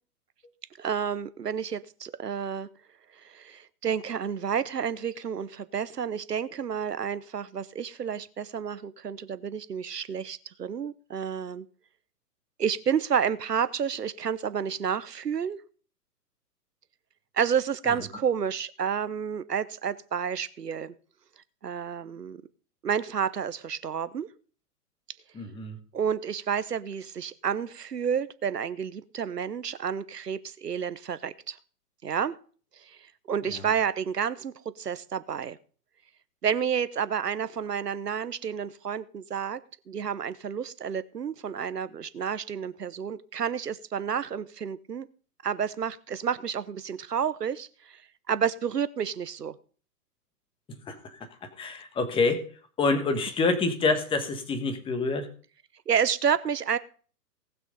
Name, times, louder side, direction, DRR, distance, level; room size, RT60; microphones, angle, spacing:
voice 1, 0.8-2.7 3.2-11.6 12.6-15.6 17.3-20.9 21.6-22.4 22.8-24.3 25.9-31.6 32.0-32.3 32.9-33.0 33.3-35.6 36.4-39.6 39.9-45.1 45.4-48.0 48.3-49.6 55.9-56.8, right 7 dB, 80° right, 15 dB, 1.1 m, -30 dB
voice 2, 25.3-25.8 50.9-52.4 52.8-55.3, left 3 dB, 10° left, 9 dB, 1.3 m, -27 dB
18.5 x 6.4 x 5.2 m, 0.42 s
figure-of-eight pair, 120°, 48 cm